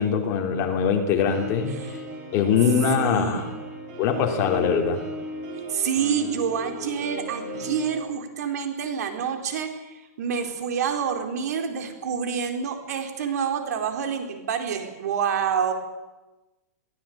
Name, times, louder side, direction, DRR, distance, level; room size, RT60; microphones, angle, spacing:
voice 1, 0.0-1.8 2.3-3.5 4.0-5.0, left 7 dB, 35° left, 3 dB, 3.5 m, -22 dB
sound 1, 1.3-8.0, equal, 40° right, 7.8 m, -35 dB
voice 2, 2.9-3.5 5.7-15.7, right 7 dB, 70° right, 5 dB, 4.3 m, -28 dB
23.0 x 16.0 x 8.8 m, 1.1 s
hypercardioid pair, 150°, 9 cm